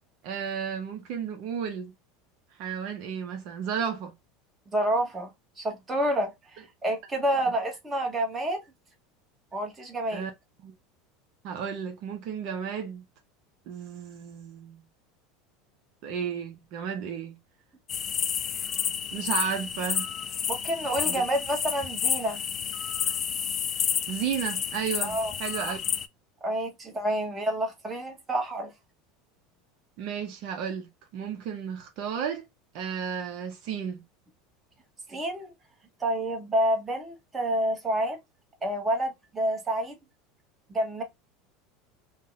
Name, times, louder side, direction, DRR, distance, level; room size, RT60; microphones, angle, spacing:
voice 1, 0.2-1.9 2.6-4.1 10.1-10.3 10.6-10.7 11.4-13.0 13.7-14.8 16.0-17.4 19.1-20.1 21.0-21.2 24.1-25.8 30.0-32.5 32.7-34.0, right 7 dB, 60° right, 0.6 m, -33 dB
voice 2, 4.7-5.3 5.6-8.6 9.5-10.2 20.5-22.4 25.0-25.3 26.4-28.7 35.1-35.5 36.0-38.2 38.6-40.0 40.7-41.0, right 1 dB, 15° right, 1.0 m, -28 dB
sound 1, 17.9-26.1, left 8 dB, 35° left, 0.3 m, -30 dB
2.7 x 2.1 x 3.8 m
supercardioid pair, 135°, 0 cm